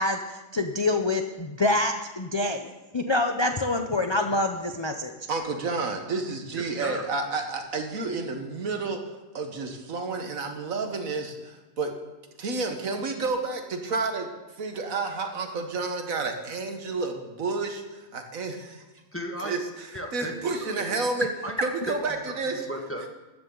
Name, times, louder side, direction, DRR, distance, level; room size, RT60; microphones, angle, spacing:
voice 1, 0.0-2.7 2.9-5.1, left 2 dB, 30° left, 5 dB, 0.5 m, -26 dB
voice 2, 5.3-9.0 9.3-11.9 12.4-14.3 14.6-18.8 19.4-21.3 21.6-22.6, right 3 dB, 75° right, 5 dB, 1.8 m, -30 dB
voice 3, 6.6-7.0 19.1-19.6 19.9-20.4 20.7-20.9 21.4-22.2 22.5-23.1, equal, 10° left, 1 dB, 1.5 m, -35 dB
15.0 x 13.0 x 3.9 m, 1.1 s
omnidirectional pair, 1.4 m